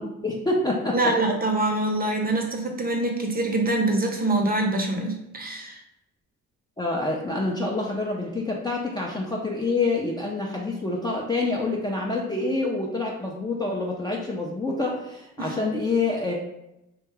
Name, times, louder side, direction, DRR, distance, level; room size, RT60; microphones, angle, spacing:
voice 1, 0.0-1.2 6.8-16.4, left 2 dB, 10° left, -3 dB, 0.4 m, -27 dB
voice 2, 0.9-5.8 15.4-15.6, right 2 dB, 25° right, 2 dB, 0.7 m, -25 dB
2.8 x 2.2 x 3.2 m, 0.86 s
hypercardioid pair, 60°, 37 cm